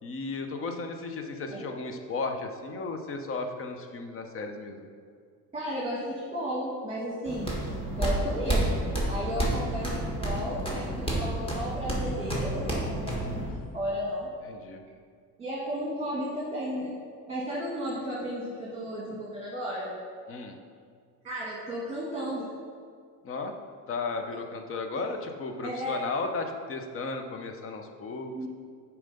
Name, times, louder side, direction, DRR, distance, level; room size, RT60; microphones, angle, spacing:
voice 1, 0.0-4.9 8.0-8.2 14.5-14.8 20.3-20.6 23.2-23.5 23.9-28.3, left 3 dB, 35° left, 5 dB, 0.8 m, -35 dB
voice 2, 5.5-7.6 8.0-14.3 15.4-17.0 17.3-19.9 21.2-22.5 24.9-25.0 25.6-26.0 28.3-28.5, equal, 15° right, -5 dB, 1.4 m, -34 dB
sound 1, 7.2-13.5, right 1 dB, 15° left, 1.5 m, -30 dB
7.0 x 4.6 x 5.3 m, 2.1 s
cardioid pair, 135°, 36 cm